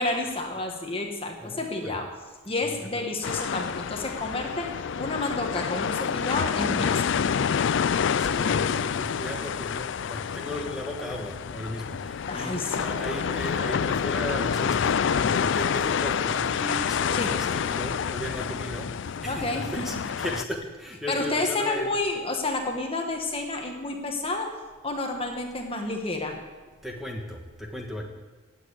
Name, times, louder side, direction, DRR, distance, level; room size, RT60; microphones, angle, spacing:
voice 1, 0.0-2.1 2.4-7.3 12.3-12.9 17.1-17.4 19.3-19.9 21.1-26.4, left 2 dB, 25° left, 3 dB, 1.4 m, -30 dB
voice 2, 1.4-2.0 2.8-3.0 8.1-22.0 26.8-28.0, equal, ahead, 0 dB, 1.4 m, -36 dB
sound 1, 3.2-20.4, left 7 dB, 55° left, 0.3 m, -28 dB
17.5 x 7.7 x 8.3 m, 1.3 s
head